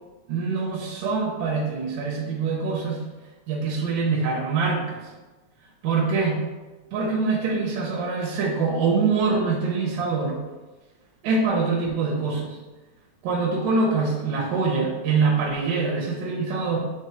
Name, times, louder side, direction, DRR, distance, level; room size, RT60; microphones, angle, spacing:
voice 1, 0.3-3.0 3.5-5.0 5.8-6.4 6.9-10.4 11.2-12.6 13.2-16.8, right 4 dB, 85° right, -3 dB, 2.7 m, -24 dB
9.7 x 4.1 x 3.1 m, 1.2 s
omnidirectional pair, 3.8 m